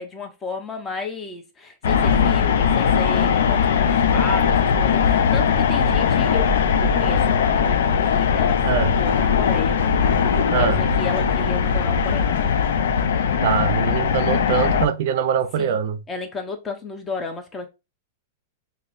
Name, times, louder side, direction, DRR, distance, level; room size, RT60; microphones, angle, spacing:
voice 1, 0.0-6.5 6.8-9.8 10.3-12.5 15.6-15.8 16.1-17.7, left 3 dB, 15° left, 0.7 m, -33 dB
sound 1, 1.8-14.9, left 7 dB, 80° left, 0.4 m, -19 dB
voice 2, 8.7-9.0 10.5-10.8 13.4-16.0, right 8 dB, 60° right, 0.5 m, -23 dB
5.3 x 2.0 x 2.5 m
supercardioid pair, 150°, 0 cm